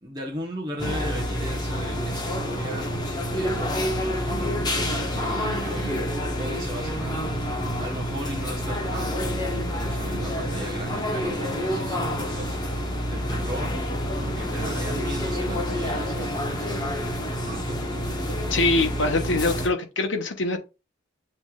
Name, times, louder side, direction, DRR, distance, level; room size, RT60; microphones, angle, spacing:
voice 1, 0.0-3.0 3.3-9.3 9.7-12.6 13.1-13.8 14.2-16.9 17.4-17.8, equal, 20° right, 0.9 m, -37 dB
sound 1, 0.8-19.7, equal, 20° left, 0.9 m, -28 dB
voice 2, 18.5-20.6, left 2 dB, 65° left, 1.0 m, -23 dB
7.1 x 3.1 x 2.3 m
head